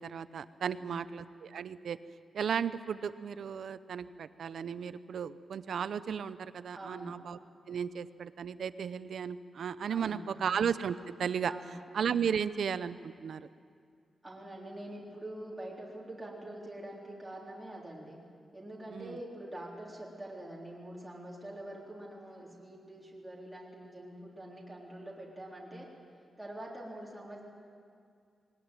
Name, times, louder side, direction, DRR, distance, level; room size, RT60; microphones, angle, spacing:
voice 1, 0.0-2.0 2.3-7.4 7.7-11.5 11.9-13.5 18.9-19.2, right 7 dB, 70° right, 14 dB, 0.7 m, -35 dB
voice 2, 0.7-1.0 6.7-7.2 9.9-10.5 11.5-11.8 14.2-18.2 18.5-25.9 26.4-27.4, right 1 dB, 10° right, -5 dB, 3.8 m, -45 dB
21.0 x 18.5 x 9.1 m, 2.3 s
wide cardioid pair, 155°, 0 cm